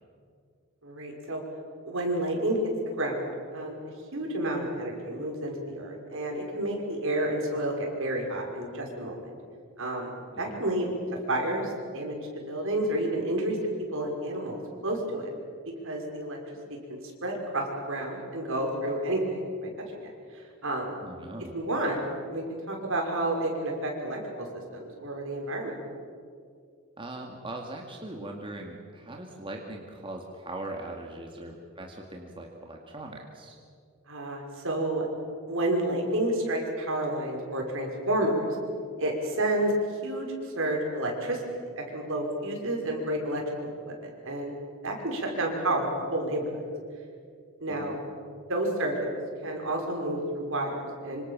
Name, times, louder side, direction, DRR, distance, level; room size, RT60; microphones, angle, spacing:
voice 1, 0.8-1.4 1.8-2.6 3.0-3.8 4.1-9.3 9.8-10.1 10.4-10.9 11.3-12.2 12.5-13.6 13.9-15.3 15.8-16.4 16.9-20.9 21.5-22.0 22.3-24.5 24.7-25.7 34.1-35.1 35.5-38.5 39.0-39.8 40.0-41.4 41.8-43.4 43.9-44.5 44.8-46.6 47.6-48.0 48.5-49.1 49.4-51.3, right 1 dB, 65° right, 1 dB, 5.8 m, -30 dB
voice 2, 10.3-10.6 21.0-21.5 27.0-33.6 47.7-48.0, right 2 dB, 25° right, 1 dB, 2.2 m, -40 dB
26.0 x 26.0 x 7.4 m, 2.3 s
head